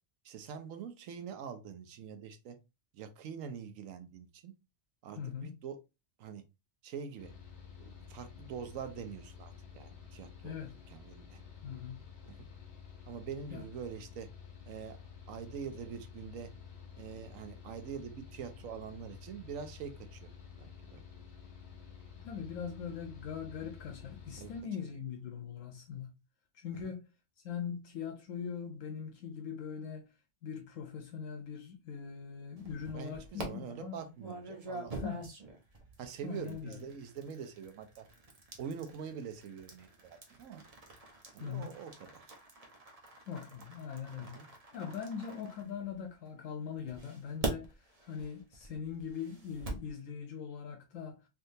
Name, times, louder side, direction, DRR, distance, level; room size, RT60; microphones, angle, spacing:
voice 1, 0.2-2.6 2.9-4.5 5.0-5.8 6.2-6.4 6.8-7.3 7.8-10.6 10.9-11.4 12.3-12.4 13.1-14.3 14.7-15.0 15.3-16.5 17.0-20.3 20.6-21.0 24.4-24.5 24.8-24.9 26.8-26.9 32.9-35.1 36.0-38.1 38.6-40.6 41.3-42.4 44.2-44.5, right 7 dB, 90° right, 1.0 m, -44 dB
voice 2, 5.2-5.6 10.4-10.7 11.6-12.0 13.5-13.6 22.2-26.1 26.5-27.0 27.4-30.0 30.4-34.0 35.0-35.2 36.2-36.8 41.4-41.7 43.3-51.2, left 7 dB, 80° left, 1.0 m, -41 dB
Mechanical fan, 7.2-24.6, left 7 dB, 55° left, 1.3 m, -51 dB
sound 1, 32.6-33.5 34.2-46.2 46.9-49.9, right 3 dB, 35° right, 0.8 m, -45 dB
3.5 x 2.7 x 2.6 m
omnidirectional pair, 1.3 m